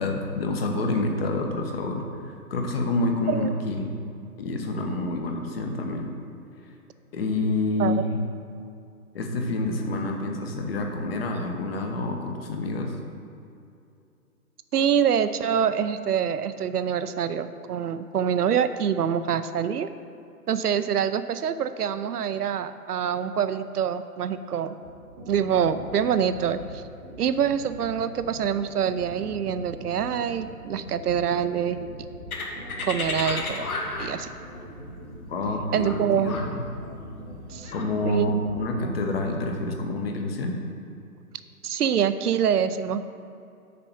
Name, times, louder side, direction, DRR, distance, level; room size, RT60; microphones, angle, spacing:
voice 1, 0.0-3.9 4.4-6.1 7.1-8.2 9.1-12.9 35.3-36.6 37.7-40.6, left 2 dB, 40° left, 3 dB, 1.1 m, -28 dB
voice 2, 14.7-19.9 20.5-24.7 25.3-26.8 27.2-31.9 32.9-33.7 34.0-34.3 35.7-36.3 37.5-37.7 38.0-38.5 41.6-43.0, right 8 dB, 75° right, 12 dB, 0.6 m, -25 dB
sound 1, 24.8-39.6, equal, 10° right, 0.6 m, -42 dB
sound 2, 32.3-37.8, left 3 dB, 65° left, 1.4 m, -33 dB
6.8 x 4.9 x 6.9 m, 2.6 s
figure-of-eight pair, 140°, 47 cm